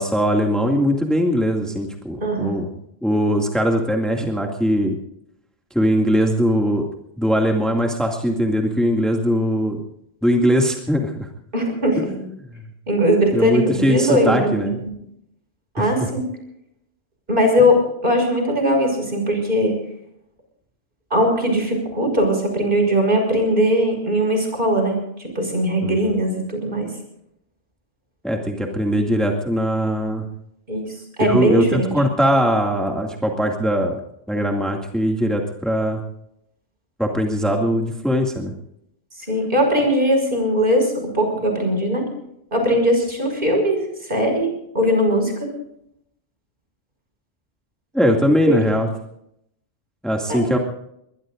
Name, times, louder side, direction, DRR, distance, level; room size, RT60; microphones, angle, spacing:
voice 1, 0.0-2.7 3.0-5.0 5.7-6.9 7.2-9.8 10.2-11.3 12.0-12.3 13.3-14.8 15.8-16.1 25.8-25.9 28.2-30.3 31.2-34.0 34.3-36.0 37.0-38.5 47.9-48.9 50.0-50.6, equal, ahead, 1 dB, 2.2 m, -20 dB
voice 2, 2.2-2.6 11.5-12.1 12.9-14.7 15.7-16.2 17.3-19.7 21.1-26.9 30.7-31.9 39.2-42.1 42.5-44.5 44.7-45.5 48.5-48.6 50.3-50.4, equal, 55° right, 3 dB, 6.1 m, -20 dB
22.0 x 22.0 x 2.6 m, 0.75 s
omnidirectional pair, 1.1 m